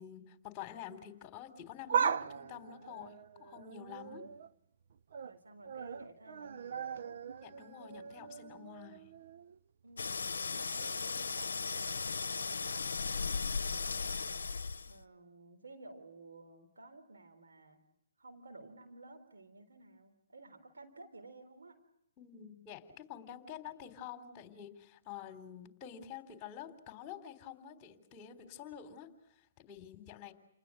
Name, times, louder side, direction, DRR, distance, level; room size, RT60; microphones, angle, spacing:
voice 1, 0.0-4.2 7.4-9.1 22.2-29.1 29.4-30.3, left 9 dB, 25° left, 6 dB, 3.6 m, -48 dB
sound 1, 1.7-4.5 4.9-5.4 5.7-9.6 9.9-10.0 11.0-11.1, right 7 dB, 60° right, 0.9 m, -39 dB
voice 2, 4.0-4.4 5.2-7.2 9.8-10.2 10.5-14.5 14.9-17.8 18.2-21.8, right 2 dB, 85° right, 7 dB, 3.9 m, -54 dB
sound 2, 10.0-15.0, left 4 dB, 80° left, 0.9 m, -36 dB
29.5 x 20.0 x 7.7 m, 0.79 s
hypercardioid pair, 140°, 0 cm